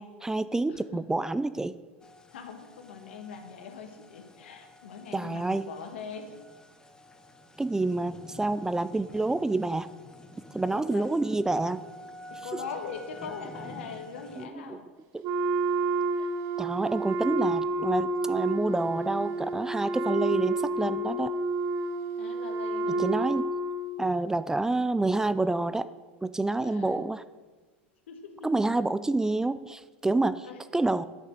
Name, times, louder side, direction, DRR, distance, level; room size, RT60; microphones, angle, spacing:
voice 1, 0.0-1.8 5.1-5.7 7.6-9.9 10.5-11.8 14.4-14.8 16.6-21.3 23.0-23.5 24.0-25.9 26.2-27.2 28.4-30.5 30.7-31.0, right 2 dB, 10° right, 15 dB, 0.4 m, -28 dB
voice 2, 0.7-1.0 2.3-6.3 10.7-11.1 12.3-14.9 16.2-16.3 22.2-23.1 26.6-27.0 28.1-28.5 30.4-30.6, left 6 dB, 80° left, 6 dB, 1.5 m, -42 dB
sound 1, 2.0-14.5, left 1 dB, 10° left, 0.9 m, -49 dB
Wind instrument woodwind instrument, 15.2-24.0, right 2 dB, 50° right, 0.9 m, -29 dB
8.7 x 6.5 x 7.5 m, 1.3 s
hypercardioid pair, 95°, 6 cm